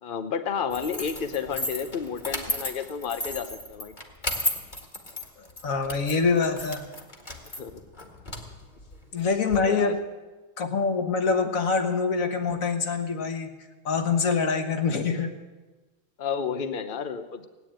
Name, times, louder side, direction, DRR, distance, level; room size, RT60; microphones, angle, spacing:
voice 1, 0.0-3.9 7.6-7.7 9.6-10.0 16.2-17.5, left 6 dB, 65° left, 10 dB, 0.5 m, -31 dB
sound 1, 0.7-9.6, left 1 dB, 25° left, 1.7 m, -35 dB
voice 2, 5.4-6.9 9.1-10.0 10.6-13.5 13.8-15.4, left 4 dB, 45° left, 7 dB, 1.5 m, -25 dB
17.5 x 9.2 x 8.8 m, 1.2 s
omnidirectional pair, 2.3 m